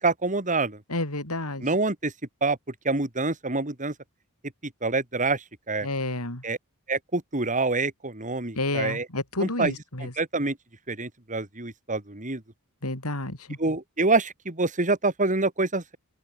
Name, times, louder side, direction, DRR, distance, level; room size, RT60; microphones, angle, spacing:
voice 1, 0.0-0.8 1.6-2.1 2.4-2.6 2.8-3.9 4.6-5.9 6.4-6.6 6.9-9.1 9.4-9.7 10.0-10.6 10.9-12.4 13.6-16.0, right 3 dB, 35° right, 3.2 m, -26 dB
voice 2, 0.9-1.7 5.8-6.4 8.6-10.1 12.8-13.6, left 2 dB, 85° left, 6.1 m, -30 dB
open air
head